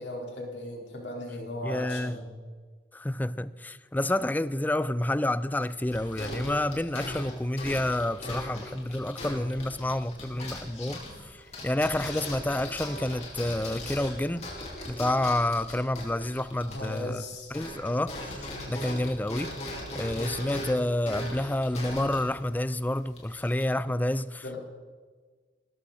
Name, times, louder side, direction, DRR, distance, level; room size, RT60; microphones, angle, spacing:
voice 1, 0.0-2.2 16.7-17.5 23.9-24.0 24.4-24.6, left 1 dB, 90° left, 4.6 m, -37 dB
voice 2, 1.6-2.2 2.9-14.5 14.8-17.2 17.5-19.5 19.9-24.6, left 1 dB, 10° left, 0.4 m, -29 dB
sound 1, 5.6-17.2 17.5-23.6, left 1 dB, 40° left, 4.5 m, -39 dB
19.5 x 14.0 x 4.4 m
head